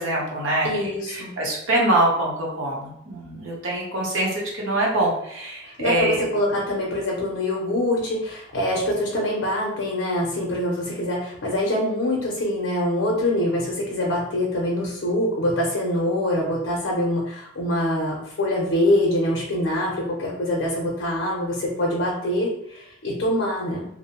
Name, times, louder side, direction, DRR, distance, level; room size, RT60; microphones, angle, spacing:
voice 1, 0.0-6.2, right 1 dB, 85° right, -3 dB, 0.8 m, -24 dB
voice 2, 0.6-1.3 5.6-23.9, left 1 dB, 90° left, -2 dB, 0.6 m, -24 dB
2.6 x 2.1 x 2.9 m, 0.77 s
head